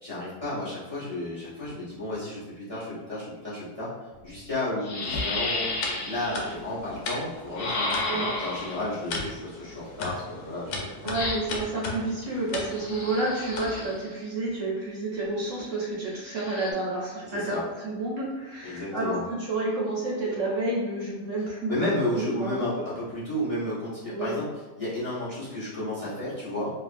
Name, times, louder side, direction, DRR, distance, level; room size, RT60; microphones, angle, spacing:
voice 1, 0.0-3.9 4.2-5.7 6.0-10.8 17.3-17.6 18.6-19.2 21.7-24.5 24.8-26.7, left 1 dB, 35° left, -11 dB, 0.5 m, -32 dB
sound 1, 4.1-4.2 4.8-6.5 7.6-8.9 11.1-11.7 12.7-14.1 16.3-16.7, left 2 dB, 70° left, 0.9 m, -32 dB
sound 2, 5.2-14.0, left 3 dB, 85° left, 1.2 m, -38 dB
voice 2, 11.0-22.8 24.1-24.3, right 2 dB, 65° right, -5 dB, 0.7 m, -30 dB
2.7 x 2.4 x 2.4 m, 1.2 s
omnidirectional pair, 1.9 m